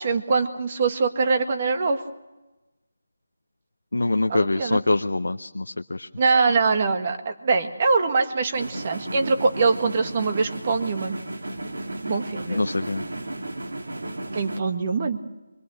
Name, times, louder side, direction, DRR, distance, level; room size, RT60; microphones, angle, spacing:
voice 1, 0.0-2.0 4.3-4.8 6.2-11.1 12.1-12.6 14.3-15.2, right 4 dB, 40° right, 7 dB, 1.9 m, -23 dB
voice 2, 3.9-6.1 12.5-13.0, left 2 dB, 85° left, 7 dB, 0.7 m, -24 dB
sound 1, 8.5-14.6, right 1 dB, 80° right, 2.5 m, -34 dB
25.0 x 21.5 x 6.4 m, 1.0 s
figure-of-eight pair, 165°, 0 cm